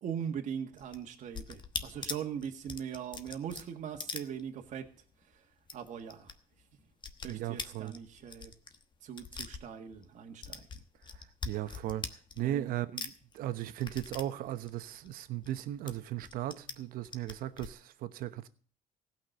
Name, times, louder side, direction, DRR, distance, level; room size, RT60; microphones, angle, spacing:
voice 1, 0.0-4.9 5.7-6.3 7.2-8.5 9.0-10.7 12.4-12.7, right 8 dB, 55° right, 1.7 m, -40 dB
sound 1, 0.7-5.0 5.2-5.3 5.6-6.3 6.6-10.1 10.4-12.7 13.0-15.5 15.9-16.7 17.1-17.7, left 5 dB, 30° left, 1.1 m, -42 dB
voice 2, 7.2-7.9 11.1-12.0 12.4-18.5, right 13 dB, 70° right, 1.0 m, -37 dB
16.0 x 6.0 x 7.9 m
cardioid pair, 125°, 15 cm